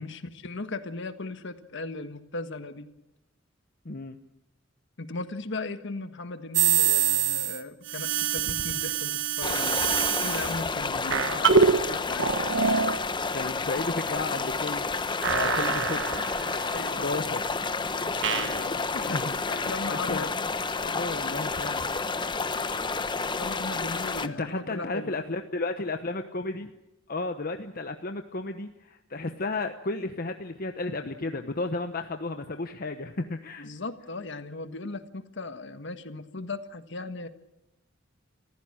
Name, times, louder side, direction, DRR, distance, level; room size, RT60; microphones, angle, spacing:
voice 1, 0.0-2.9 5.0-9.8 10.2-12.4 16.7-17.1 18.0-20.5 23.4-25.1 33.6-37.3, left 3 dB, 65° left, 9 dB, 1.6 m, -37 dB
voice 2, 3.8-4.2 11.0-11.3 13.3-14.9 15.2-16.0 17.0-17.4 18.9-20.3 20.8-21.9 24.2-26.7 27.1-33.7, left 3 dB, 50° left, 6 dB, 1.0 m, -33 dB
sound 1, 6.5-7.6 7.9-10.6 11.1-11.8 12.2-13.0 15.2-16.7 18.2-18.6, right 7 dB, 65° right, 1.3 m, -25 dB
sound 2, 9.4-24.3, left 4 dB, 25° left, 0.9 m, -30 dB
27.5 x 15.0 x 8.9 m, 0.91 s
head